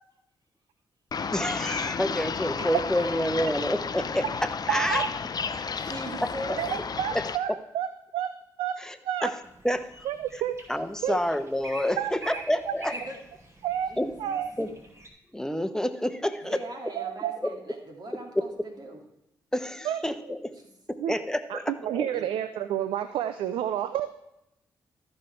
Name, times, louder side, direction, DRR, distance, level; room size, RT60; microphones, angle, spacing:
sound 1, 1.1-7.4, left 5 dB, 45° left, 0.7 m, -32 dB
voice 1, 1.3-4.2 4.7-5.0 6.2-6.3 7.1-7.2 8.8-8.9 9.2-9.3 9.6-9.8 10.7-12.9 14.0-14.1 14.6-14.7 15.3-16.6 18.4-18.5 19.5-20.4 20.9-21.6 21.9-22.1, equal, 5° left, 9 dB, 1.1 m, -28 dB
voice 2, 2.7-3.2 5.8-6.6 12.9-13.2 13.9-14.4 16.4-19.0 22.1-22.3, right 1 dB, 50° right, 2 dB, 2.5 m, -41 dB
voice 3, 4.7-5.1 6.6-7.9 8.1-9.3 10.0-10.6 11.0-11.2 12.0-12.7 13.6-13.9 14.2-14.5 17.0-17.4 19.8-20.3 21.0-21.2 21.5-24.1, right 10 dB, 80° right, 11 dB, 0.4 m, -30 dB
sound 2, 9.4-15.1, right 1 dB, 30° right, 2.4 m, -46 dB
13.5 x 5.3 x 4.5 m, 0.82 s
hypercardioid pair, 45°, 9 cm